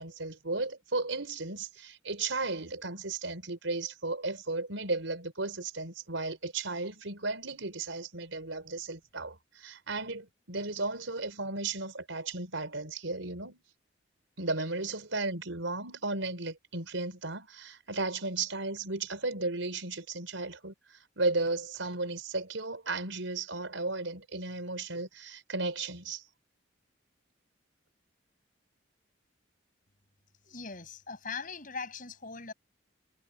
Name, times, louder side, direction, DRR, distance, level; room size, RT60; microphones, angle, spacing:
voice 1, 0.0-13.6 14.4-26.2, right 3 dB, 80° right, 4.1 m, -35 dB
voice 2, 30.4-32.5, left 4 dB, 45° left, 6.3 m, -40 dB
head